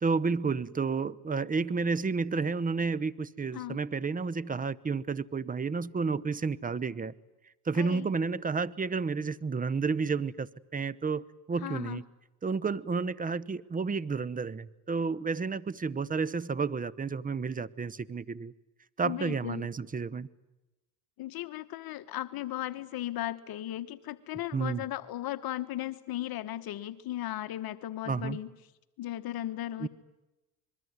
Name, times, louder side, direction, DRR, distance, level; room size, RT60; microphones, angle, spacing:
voice 1, 0.0-7.1 7.7-12.0 12.4-18.5 19.0-20.3 24.5-24.8 28.1-28.4 29.8-29.9, right 4 dB, 20° right, 20 dB, 0.9 m, -31 dB
voice 2, 7.7-8.1 11.6-12.0 19.0-19.7 21.2-28.5 29.0-29.9, left 14 dB, 60° left, 10 dB, 1.3 m, -36 dB
26.0 x 22.0 x 9.6 m, 1.0 s
supercardioid pair, 95°, 42 cm